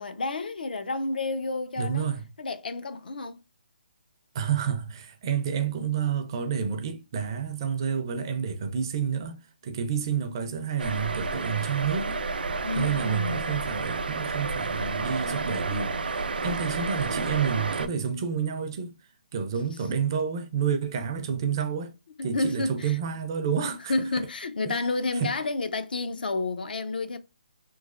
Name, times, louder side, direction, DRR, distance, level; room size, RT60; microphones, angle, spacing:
voice 1, 0.0-2.1 2.4-3.4 12.6-13.6 22.2-23.0 23.9-27.2, left 3 dB, 75° left, 0.6 m, -30 dB
voice 2, 1.8-2.2 4.3-12.2 12.8-19.0 19.3-21.9 22.2-23.9 24.7-24.8 25.2-25.3, right 7 dB, 30° right, 0.4 m, -29 dB
sound 1, 10.8-17.9, right 4 dB, 85° right, 0.5 m, -31 dB
3.1 x 3.1 x 2.4 m
hypercardioid pair, 170°, 5 cm